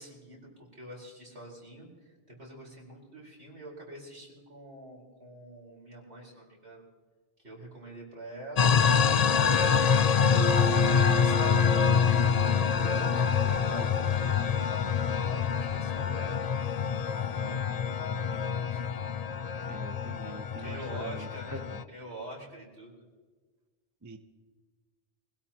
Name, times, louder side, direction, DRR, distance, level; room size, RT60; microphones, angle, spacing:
voice 1, 0.0-6.8 7.4-14.7 15.1-16.5 17.3-19.0 19.5-19.8 20.2-22.9, right 1 dB, 65° right, -2 dB, 4.7 m, -46 dB
sound 1, 8.6-21.8, left 7 dB, 55° left, 0.4 m, -26 dB
Acoustic guitar, 10.3-13.9, right 5 dB, 5° left, 4.5 m, -37 dB
voice 2, 19.7-21.8 24.0-24.2, right 1 dB, 20° right, 7 dB, 0.7 m, -43 dB
24.5 x 17.0 x 3.0 m, 1.4 s
omnidirectional pair, 1.2 m